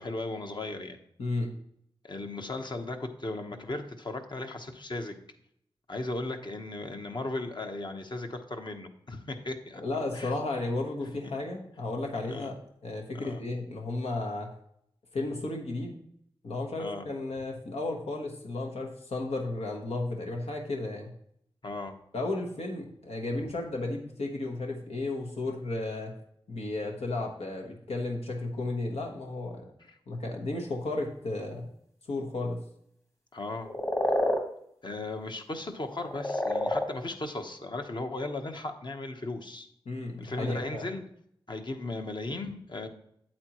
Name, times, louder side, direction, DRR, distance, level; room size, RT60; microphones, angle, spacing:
voice 1, 0.0-1.0 2.0-5.2 5.9-9.8 10.1-10.3 11.2-11.3 12.3-12.5 13.1-13.4 16.8-17.1 21.6-22.0 33.3-33.7 34.8-39.7 40.2-41.0 41.5-42.9, left 2 dB, 50° left, 5 dB, 1.0 m, -36 dB
voice 2, 1.2-1.5 9.7-12.6 12.8-14.5 15.1-16.0 16.4-21.1 22.1-26.1 26.5-29.6 30.1-31.7 32.1-32.6 39.8-40.9, left 2 dB, 90° left, 1 dB, 1.2 m, -33 dB
sound 1, 33.6-34.4 35.9-36.9, left 1 dB, 25° left, 1.4 m, -27 dB
8.7 x 7.7 x 3.0 m, 0.71 s
wide cardioid pair, 70°, 10 cm